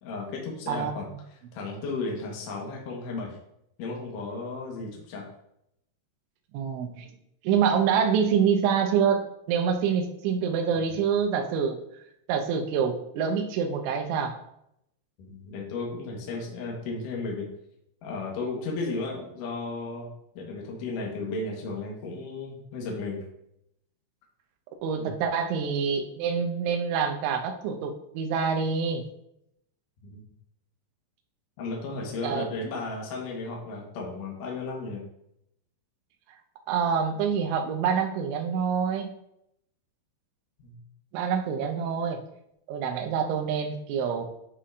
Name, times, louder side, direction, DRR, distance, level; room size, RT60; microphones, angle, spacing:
voice 1, 0.0-1.1 1.5-3.4 3.8-5.3 10.8-10.9 15.2-17.5 18.0-20.1 20.3-23.2 25.0-25.1 30.0-30.3 31.6-35.0 40.6-40.8, left 3 dB, 70° left, -1 dB, 2.0 m, -34 dB
voice 2, 6.5-7.1 7.4-11.8 12.3-14.4 24.8-29.1 32.2-32.5 36.7-39.1 41.1-42.2 42.7-44.3, right 7 dB, 80° right, 4 dB, 3.0 m, -26 dB
9.9 x 5.6 x 2.6 m, 0.77 s
omnidirectional pair, 5.7 m